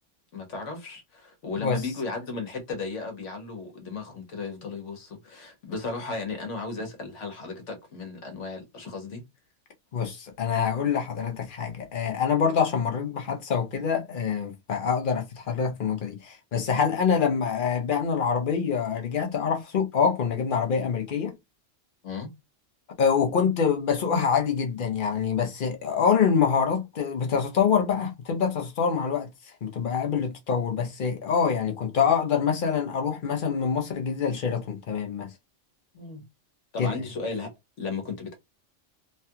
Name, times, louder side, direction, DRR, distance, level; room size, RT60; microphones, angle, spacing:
voice 1, 0.3-9.2 22.0-22.3 35.9-36.2 36.7-37.5 37.8-38.3, left 4 dB, 70° left, 1.3 m, -35 dB
voice 2, 9.9-21.4 23.0-29.3 29.6-35.3 36.8-37.0, left 6 dB, 50° left, 0.8 m, -25 dB
3.2 x 2.3 x 2.8 m
omnidirectional pair, 1.3 m